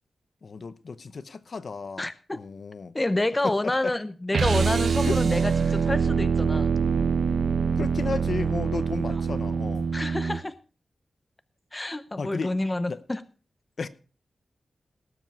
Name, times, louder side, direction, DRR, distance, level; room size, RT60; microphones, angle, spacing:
voice 1, 0.4-2.9 3.4-3.9 5.0-5.2 5.6-5.7 7.8-9.9 12.2-12.5 12.9-13.0 13.8-13.9, left 4 dB, 55° left, 0.8 m, -33 dB
voice 2, 2.0-2.4 2.9-6.7 9.1-9.3 9.9-10.6 11.7-13.2, left 2 dB, 20° left, 0.6 m, -28 dB
sound 1, 4.3-10.4, right 6 dB, 75° right, 0.8 m, -24 dB
18.5 x 7.4 x 4.6 m
wide cardioid pair, 120°, 0 cm